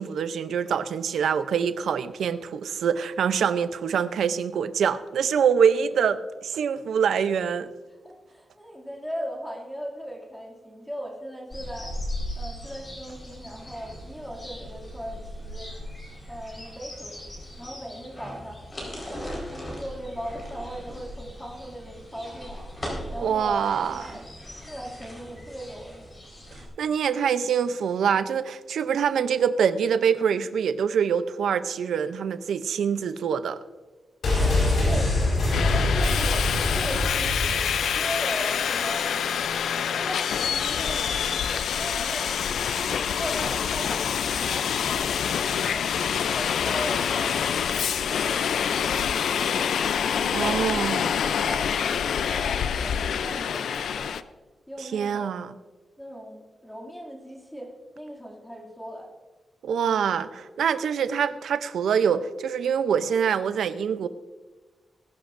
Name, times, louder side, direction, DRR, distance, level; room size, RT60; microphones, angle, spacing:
voice 1, 0.0-7.7 23.2-24.0 26.8-33.6 50.3-51.1 54.8-55.5 59.6-64.1, right 7 dB, 85° right, 0.6 m, -25 dB
voice 2, 8.0-12.0 12.4-15.7 16.3-17.2 17.6-18.6 19.1-22.6 23.1-24.3 24.6-26.1 34.8-35.1 35.5-39.3 39.8-42.5 42.8-45.8 46.3-47.4 47.7-49.8 50.1-54.2 54.7-55.4 56.0-59.1, equal, 5° left, 2.4 m, -38 dB
sound 1, 11.5-26.7, equal, 25° left, 4.4 m, -38 dB
sound 2, 34.2-38.0 38.3-38.4, left 2 dB, 60° left, 4.8 m, -24 dB
Subway metro underground, 35.5-54.2, left 8 dB, 85° left, 0.4 m, -26 dB
20.0 x 11.5 x 2.6 m
wide cardioid pair, 160°, 0 cm